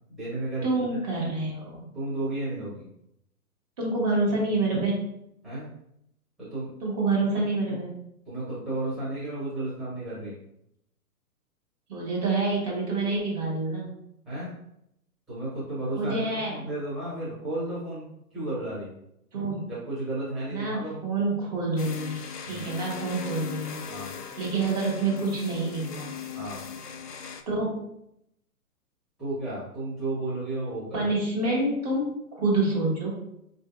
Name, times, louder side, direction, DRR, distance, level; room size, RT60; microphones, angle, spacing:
voice 1, 0.1-0.7 1.9-2.8 5.4-5.7 6.4-6.7 8.3-10.3 14.2-14.5 15.3-18.9 19.7-21.0 22.4-22.6 23.8-24.1 26.3-26.6 29.2-31.1, right 2 dB, ahead, -11 dB, 0.8 m, -33 dB
voice 2, 0.6-1.8 3.8-5.1 6.8-7.9 11.9-13.9 16.0-16.6 19.3-19.7 20.5-22.2 22.4-23.8 24.4-26.1 27.5-27.8 30.9-33.2, right 2 dB, 25° right, -3 dB, 0.9 m, -27 dB
sound 1, 21.8-27.4, left 7 dB, 90° left, 0.6 m, -39 dB
4.6 x 2.6 x 2.4 m, 0.78 s
figure-of-eight pair, 130°, 45 cm